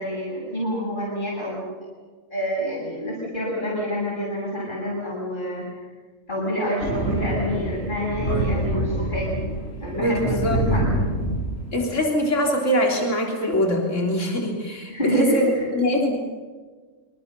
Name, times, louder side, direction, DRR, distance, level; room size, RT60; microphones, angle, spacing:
voice 1, 0.0-1.7 2.3-5.8 6.3-9.4 9.8-10.9 14.9-15.7, equal, 40° left, -6 dB, 8.0 m, -27 dB
Thunder, 6.8-11.9, right 1 dB, 85° left, 4.9 m, -26 dB
voice 2, 9.9-10.6 11.7-16.2, equal, 70° left, 1 dB, 3.9 m, -23 dB
26.5 x 26.5 x 6.8 m, 1.4 s
omnidirectional pair, 1.3 m